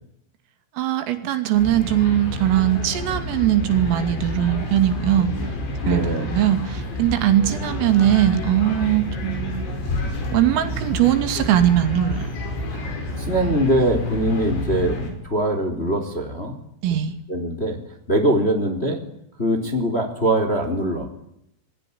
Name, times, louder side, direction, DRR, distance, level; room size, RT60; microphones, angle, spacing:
voice 1, 0.7-5.3 5.9-9.7 10.3-12.3 16.8-17.2, right 12 dB, 75° right, 9 dB, 4.8 m, -20 dB
sound 1, 1.5-15.1, left 1 dB, 60° left, 7.5 m, -29 dB
voice 2, 5.8-6.3 12.7-16.6 17.3-17.8 18.1-19.0 19.4-21.1, right 1 dB, 15° left, 5 dB, 3.2 m, -22 dB
27.5 x 21.5 x 10.0 m, 0.75 s
omnidirectional pair, 6.0 m